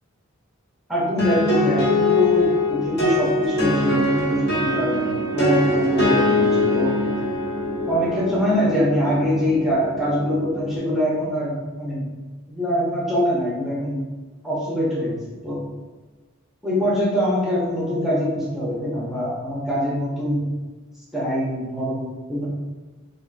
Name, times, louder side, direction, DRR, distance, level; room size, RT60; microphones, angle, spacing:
voice 1, 0.9-7.0 7.9-12.1 12.5-14.0 14.4-15.6 16.6-20.5 21.1-22.5, equal, ahead, -7 dB, 0.7 m, -23 dB
sound 1, 1.2-10.8, left 1 dB, 55° left, 1.5 m, -23 dB
3.5 x 2.4 x 2.5 m, 1.3 s
head